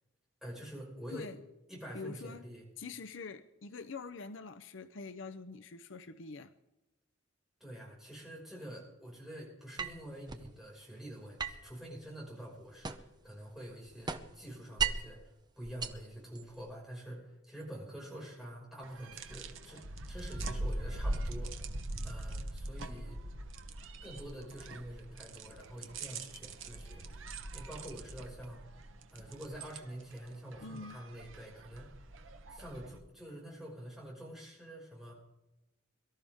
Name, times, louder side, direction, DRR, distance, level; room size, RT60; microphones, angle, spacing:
voice 1, 0.4-1.3 1.7-2.6 7.6-21.5 22.0-23.2 24.0-27.2 27.5-28.6 29.1-31.9 32.5-35.1, right 1 dB, ahead, 5.9 m, -47 dB
voice 2, 1.9-2.4 2.8-6.5 30.6-31.0, left 4 dB, 65° left, 0.7 m, -45 dB
sound 1, 9.8-10.5 11.4-13.3 13.6-15.2 15.6-16.7, right 6 dB, 20° right, 0.7 m, -38 dB
sound 2, 18.8-33.0, right 1 dB, 70° right, 1.1 m, -42 dB
23.0 x 13.0 x 3.6 m
head